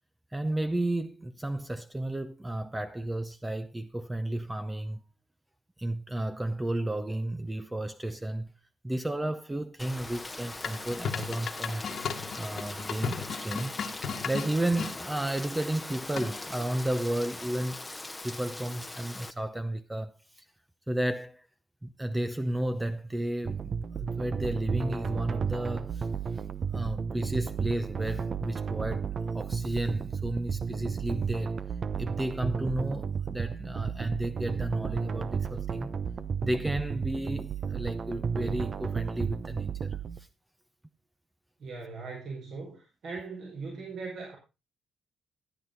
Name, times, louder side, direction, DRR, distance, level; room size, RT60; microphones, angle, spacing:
voice 1, 0.3-5.0 5.8-8.5 8.8-11.8 12.4-13.7 14.2-17.8 18.2-20.4 20.9-21.5 21.8-23.7 24.0-26.1 26.3-26.4 26.7-31.6 32.0-36.0 36.4-40.3, right 1 dB, 10° right, 0.7 m, -32 dB
Rain, 9.8-19.3, left 2 dB, 15° left, 0.9 m, -41 dB
sound 1, 10.6-15.0 16.2-16.6, left 6 dB, 60° left, 1.5 m, -36 dB
sound 2, 23.4-40.2, right 6 dB, 45° right, 0.8 m, -33 dB
voice 2, 41.6-44.4, right 4 dB, 60° right, 4.9 m, -39 dB
12.5 x 9.4 x 3.9 m
cardioid pair, 90°, 0 cm